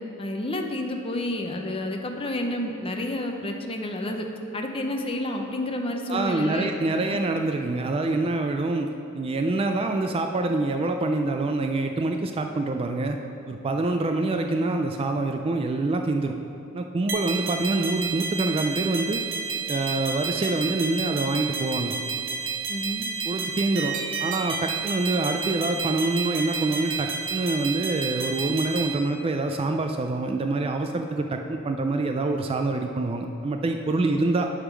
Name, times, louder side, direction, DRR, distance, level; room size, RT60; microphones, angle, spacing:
voice 1, 0.2-4.3 4.5-7.2 17.3-17.4 22.7-23.1 34.0-34.2, left 1 dB, 25° left, 3 dB, 0.6 m, -30 dB
voice 2, 6.1-8.9 9.1-13.2 13.5-16.3 16.7-19.2 19.7-22.0 23.3-34.5, right 2 dB, 25° right, 5 dB, 0.3 m, -26 dB
sound 1, 17.1-28.9, right 5 dB, 60° right, 0.9 m, -31 dB
9.9 x 3.7 x 6.1 m, 2.6 s
head